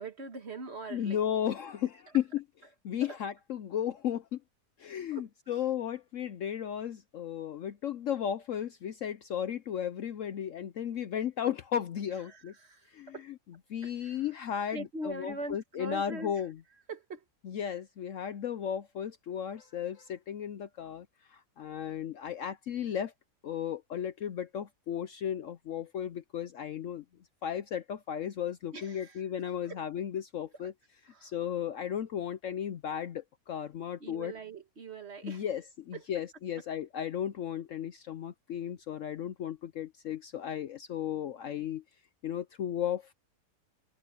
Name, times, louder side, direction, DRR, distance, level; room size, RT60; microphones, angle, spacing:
voice 1, 0.0-1.2 3.0-3.2 5.1-5.6 12.2-13.3 13.8-14.3 14.7-16.5 16.9-17.2 28.7-29.2 29.7-29.8 30.6-30.7 31.0-31.3 34.0-35.5 35.9-36.2 36.6-36.7, right 2 dB, 40° right, 1.6 m, -42 dB
voice 2, 0.9-2.4 2.8-4.4 4.8-12.5 12.9-13.1 13.7-16.6 17.4-23.1 23.4-27.0 27.4-30.7 31.2-34.3 35.2-41.8 42.2-43.1, left 9 dB, 65° left, 0.9 m, -35 dB
omnidirectional pair, 1.7 m